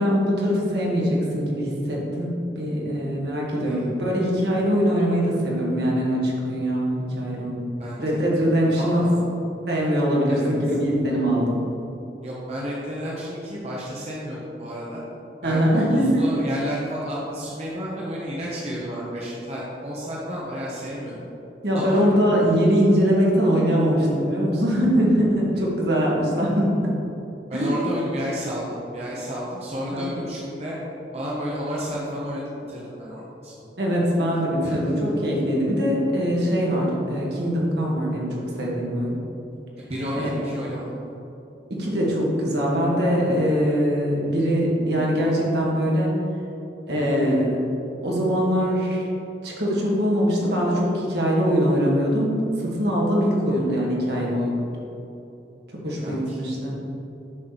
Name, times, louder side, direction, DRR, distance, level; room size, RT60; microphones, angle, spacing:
voice 1, 0.0-7.7 8.0-9.1 9.7-11.6 15.4-16.2 21.6-26.9 27.5-27.7 29.9-30.1 33.8-39.2 40.1-40.3 41.7-46.1 46.9-47.6 48.0-49.0 49.4-54.6 55.8-56.8, equal, 65° right, -4 dB, 1.8 m, -22 dB
voice 2, 7.8-8.2 8.8-9.2 10.3-10.5 12.2-15.0 15.4-21.1 21.7-22.0 27.5-30.8 31.1-33.5 34.6-35.0 39.8-40.9 56.0-56.4, equal, 35° right, -6 dB, 1.0 m, -31 dB
7.4 x 6.3 x 4.1 m, 2.9 s
head